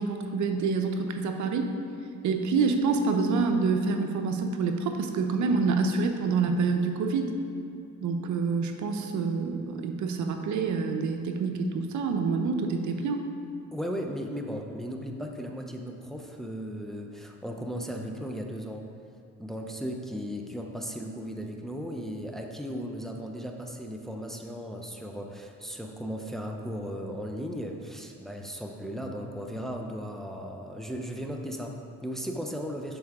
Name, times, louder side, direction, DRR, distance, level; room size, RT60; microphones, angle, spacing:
voice 1, 0.0-1.7 2.2-7.3 8.0-13.2, right 4 dB, 70° right, 5 dB, 0.8 m, -27 dB
voice 2, 13.7-18.9 19.4-33.0, equal, ahead, 2 dB, 0.7 m, -36 dB
11.5 x 4.8 x 3.6 m, 2.4 s
cardioid pair, 90°, 30 cm